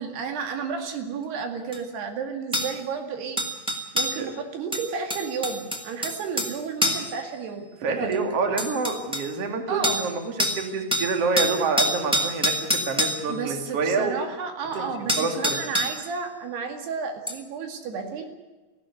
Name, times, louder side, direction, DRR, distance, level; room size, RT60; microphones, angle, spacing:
voice 1, 0.0-3.4 3.9-8.2 9.7-10.0 13.3-18.3, right 5 dB, 85° right, 5 dB, 4.2 m, -32 dB
sound 1, 1.7-1.8 2.5-2.7 3.4-4.2 4.7-6.5 6.8-7.1 8.1-8.2 8.6-9.3 9.8-10.1 10.4-10.6 10.9-13.2 14.7-14.8 15.1-16.0 17.3-17.4, equal, ahead, 1.5 m, -26 dB
voice 2, 7.8-14.2 14.7-15.6, right 4 dB, 40° right, 5 dB, 3.2 m, -27 dB
19.0 x 15.5 x 9.6 m, 1.2 s
omnidirectional pair, 4.6 m